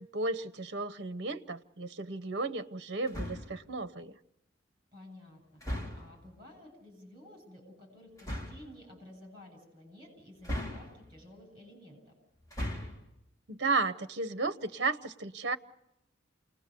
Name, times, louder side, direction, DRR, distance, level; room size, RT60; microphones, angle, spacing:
voice 1, 0.0-4.2 13.5-15.6, right 3 dB, 60° right, 0.8 m, -34 dB
sound 1, 3.1-3.6 5.6-6.2 8.2-8.7 10.4-11.2 12.4-13.1, left 1 dB, 20° left, 2.8 m, -38 dB
voice 2, 4.9-5.6 5.9-12.2, left 1 dB, 25° right, 8.0 m, -53 dB
28.5 x 19.5 x 6.8 m
head